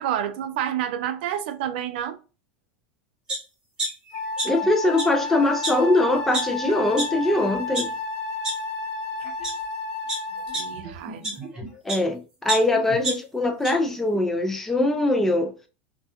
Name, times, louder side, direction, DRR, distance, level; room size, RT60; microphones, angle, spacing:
voice 1, 0.0-2.2 10.5-11.4, right 10 dB, 65° right, 0.4 m, -29 dB
sound 1, 3.3-3.4 3.8-4.7 4.9-5.0 5.6-5.7 6.3-6.4 7.0-7.1 7.5-7.8 8.4-8.5 9.2-9.5 10.1-12.0 12.5-13.7 14.1-14.2, right 2 dB, 15° right, 0.8 m, -29 dB
Wind instrument woodwind instrument, 4.1-10.9, left 3 dB, 50° left, 0.9 m, -31 dB
voice 2, 4.4-7.9 11.8-15.5, left 2 dB, 5° left, 0.3 m, -22 dB
2.3 x 2.2 x 2.7 m
supercardioid pair, 155°, 6 cm